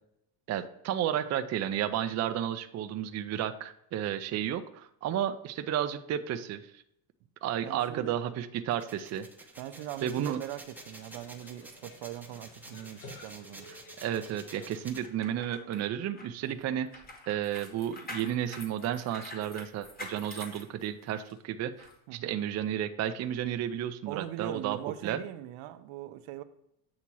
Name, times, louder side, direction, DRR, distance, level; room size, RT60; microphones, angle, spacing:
voice 1, 0.5-6.8 7.4-9.3 10.0-10.4 13.7-16.9 17.3-24.8 25.0-25.2, right 10 dB, 35° right, 9 dB, 0.5 m, -32 dB
voice 2, 7.6-8.2 9.6-13.7 16.4-16.6 22.1-22.3 24.1-26.4, right 13 dB, 75° right, 10 dB, 0.7 m, -41 dB
sound 1, 8.7-15.1, right 2 dB, 5° right, 0.7 m, -50 dB
sound 2, 9.8-14.9, left 2 dB, 70° left, 1.8 m, -53 dB
sound 3, 15.0-21.3 21.8-21.9, left 2 dB, 20° left, 1.3 m, -46 dB
8.4 x 2.9 x 6.1 m, 0.78 s
cardioid pair, 120°, 49 cm